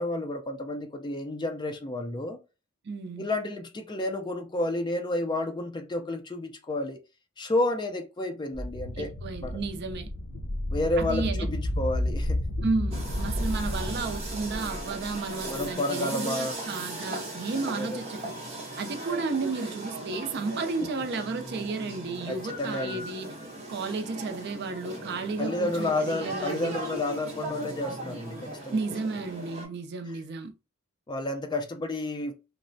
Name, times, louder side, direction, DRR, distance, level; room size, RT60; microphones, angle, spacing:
voice 1, 0.0-2.4 3.2-7.0 7.4-9.1 9.4-9.6 10.7-12.4 15.5-16.5 17.6-18.1 20.8-21.1 22.3-23.1 25.4-28.8 30.1-30.2 31.1-32.3, left 2 dB, 20° left, 0.3 m, -31 dB
voice 2, 2.8-3.3 9.0-10.1 11.0-11.5 12.6-18.3 18.8-23.3 23.7-26.8 28.7-30.5, right 3 dB, 50° right, 0.4 m, -33 dB
sound 1, 8.5-15.6, left 1 dB, 80° left, 0.8 m, -31 dB
sound 2, 12.9-29.7, right 2 dB, 30° right, 0.8 m, -38 dB
3.1 x 2.0 x 2.5 m
head